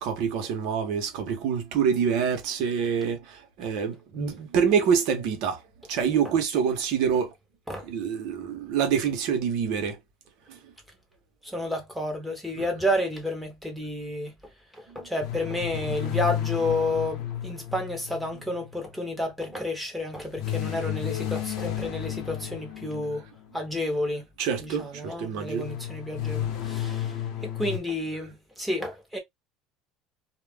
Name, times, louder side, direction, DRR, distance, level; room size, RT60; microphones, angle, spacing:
voice 1, 0.0-5.6 5.9-7.3 7.8-10.0 10.5-10.6 12.6-12.7 14.9-15.1 21.0-21.1 24.4-25.7, right 7 dB, 65° right, 1.0 m, -26 dB
voice 2, 11.4-14.3 14.9-23.2 23.5-24.2 24.6-27.1 27.4-29.2, left 1 dB, 5° right, 1.1 m, -30 dB
sound 1, 15.2-18.7 20.4-23.5 25.6-27.8, left 11 dB, 65° left, 0.8 m, -32 dB
2.4 x 2.2 x 3.4 m
cardioid pair, 135°, 0 cm